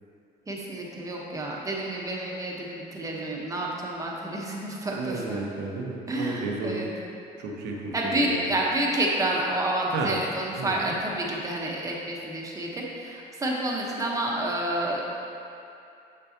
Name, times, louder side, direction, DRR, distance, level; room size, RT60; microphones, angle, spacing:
voice 1, 0.5-5.6 6.1-6.9 7.9-15.1, right 1 dB, 20° right, -3 dB, 1.1 m, -29 dB
voice 2, 5.0-6.8 7.4-8.5 9.9-10.2 10.6-11.0, right 3 dB, 85° right, 0 dB, 0.9 m, -32 dB
6.9 x 6.8 x 2.9 m, 2.7 s
cardioid pair, 110°, 17 cm